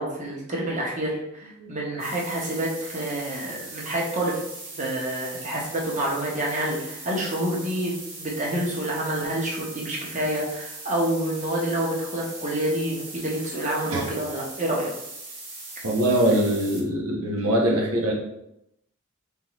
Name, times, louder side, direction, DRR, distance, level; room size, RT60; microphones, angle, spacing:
voice 1, 0.0-4.4 4.7-14.9, right 1 dB, 35° right, -3 dB, 1.0 m, -28 dB
sound 1, 2.0-16.8, right 2 dB, 55° right, 1.1 m, -40 dB
voice 2, 15.8-18.1, right 1 dB, 85° right, -1 dB, 1.0 m, -23 dB
3.8 x 3.6 x 3.1 m, 0.84 s
head